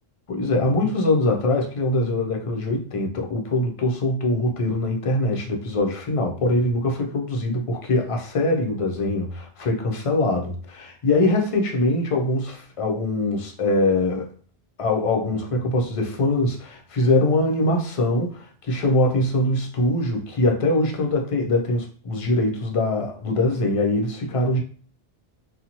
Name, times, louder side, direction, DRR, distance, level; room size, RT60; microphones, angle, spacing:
voice 1, 0.3-14.3 14.8-24.6, left 2 dB, 50° left, 0.4 m, -23 dB
2.6 x 2.1 x 2.8 m
omnidirectional pair, 1.0 m